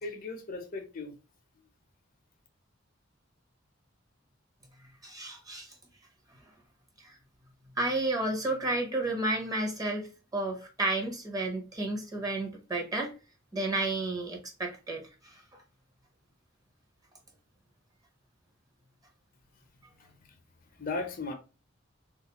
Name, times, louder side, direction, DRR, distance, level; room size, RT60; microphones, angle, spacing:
voice 1, 0.0-1.1 20.0-20.1 20.8-21.3, left 3 dB, 45° left, 0.7 m, -36 dB
voice 2, 5.0-5.7 7.8-10.0 10.3-13.1 13.5-15.3, right 2 dB, 20° right, 0.8 m, -31 dB
3.6 x 2.4 x 2.9 m
head